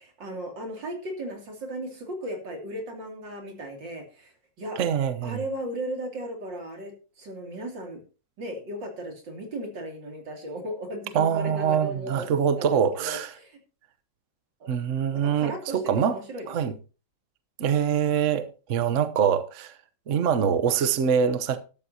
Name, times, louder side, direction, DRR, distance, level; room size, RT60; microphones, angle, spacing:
voice 1, 0.0-4.8 5.2-8.0 8.4-12.3 12.6-13.6 14.6-14.7 15.1-16.7, right 1 dB, 90° right, 3.5 m, -36 dB
voice 2, 4.8-5.4 11.1-13.3 14.7-16.2 16.5-16.7 17.6-19.7 20.1-21.6, right 8 dB, 50° right, 1.1 m, -24 dB
12.5 x 12.5 x 2.8 m
omnidirectional pair, 1.9 m